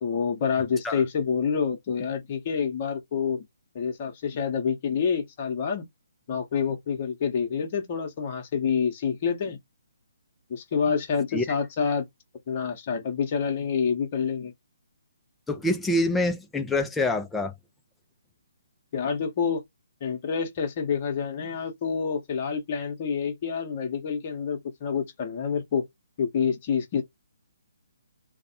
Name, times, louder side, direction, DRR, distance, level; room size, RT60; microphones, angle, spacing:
voice 1, 0.0-3.4 3.7-5.8 6.3-9.6 10.5-12.1 12.5-14.5 18.9-19.6 20.0-25.8 26.2-27.0, left 6 dB, 35° left, 0.8 m, -27 dB
voice 2, 15.5-17.5, left 2 dB, 5° left, 0.4 m, -25 dB
2.5 x 2.1 x 2.7 m
figure-of-eight pair, 135°, 0 cm